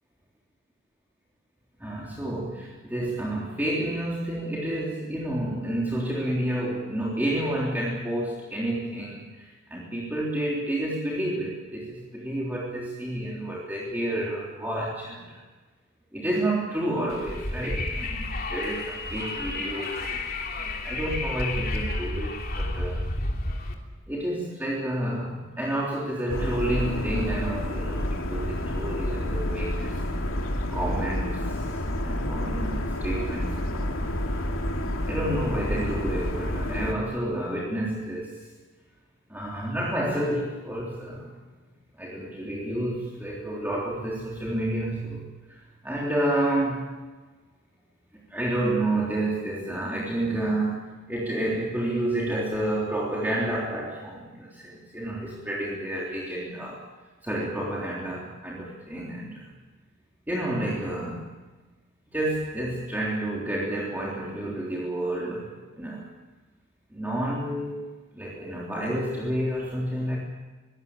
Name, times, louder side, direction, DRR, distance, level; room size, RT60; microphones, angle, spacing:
voice 1, 1.8-15.4 16.1-20.3 20.6-23.1 24.1-30.0 30.7-31.7 32.0-34.2 35.1-38.4 39.3-41.3 42.0-46.9 48.3-56.8 57.2-59.4 60.3-61.2 62.1-66.1 66.9-70.2, right 1 dB, 10° right, -4 dB, 3.5 m, -30 dB
Wind, 17.1-23.8, left 2 dB, 50° left, 3.0 m, -31 dB
sound 1, 26.3-36.9, left 1 dB, 85° left, 2.9 m, -29 dB
23.5 x 16.5 x 8.8 m, 1.3 s
head